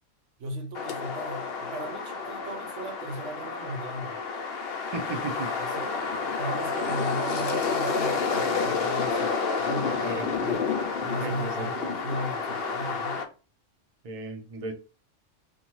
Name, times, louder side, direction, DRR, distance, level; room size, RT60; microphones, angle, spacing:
voice 1, 0.4-4.2 5.6-6.1 6.4-10.7 11.0-13.2, right 1 dB, 75° right, 0.9 m, -37 dB
sound 1, 0.8-13.3, left 4 dB, 60° left, 0.7 m, -29 dB
voice 2, 4.9-5.5 8.8-8.9 10.0-10.3 11.2-11.7 14.0-14.7, right 2 dB, 45° right, 0.4 m, -35 dB
2.6 x 2.2 x 3.0 m
omnidirectional pair, 1.3 m